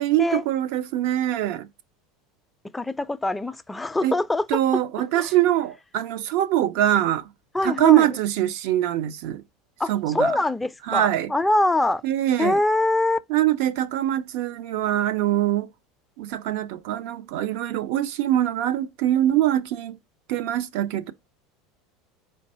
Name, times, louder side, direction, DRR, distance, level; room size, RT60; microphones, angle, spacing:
voice 1, 0.0-1.7 4.0-4.2 4.5-7.3 7.6-9.4 9.9-10.3 10.9-11.3 12.0-12.6 13.3-15.7 16.2-20.0 20.3-21.1, right 12 dB, 65° right, 0.5 m, -23 dB
voice 2, 2.7-4.8 5.1-5.3 7.5-8.2 9.8-12.0 12.4-13.2, left 2 dB, 10° left, 0.4 m, -24 dB
4.5 x 2.6 x 4.1 m
hypercardioid pair, 75°, 0 cm